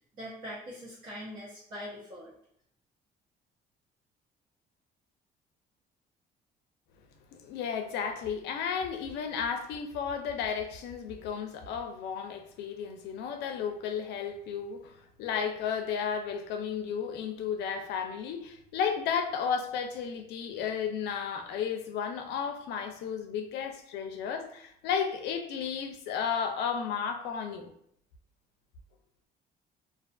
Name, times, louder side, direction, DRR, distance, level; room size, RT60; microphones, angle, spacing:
voice 1, 0.1-2.3, equal, 55° right, -10 dB, 1.0 m, -42 dB
voice 2, 7.3-27.7, left 7 dB, 80° left, 6 dB, 0.4 m, -33 dB
2.4 x 2.3 x 2.3 m, 0.67 s
cardioid pair, 110°, 17 cm